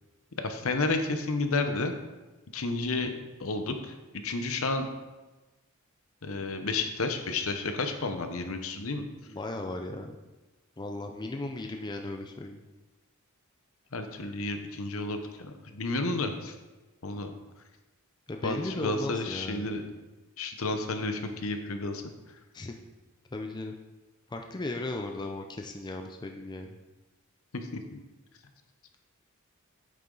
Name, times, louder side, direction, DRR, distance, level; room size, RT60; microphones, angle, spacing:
voice 1, 0.4-1.9 2.5-3.1 3.4-3.9 4.2-4.9 6.2-9.0 13.9-16.5 17.0-17.3 18.4-19.8 20.4-22.0 27.7-28.0, left 3 dB, 65° left, 6 dB, 0.9 m, -31 dB
voice 2, 9.3-10.2 10.8-12.6 18.3-19.8 22.5-22.7 23.3-23.8 24.3-26.8, left 2 dB, 20° left, 3 dB, 0.4 m, -36 dB
8.5 x 6.9 x 3.9 m, 1.2 s
head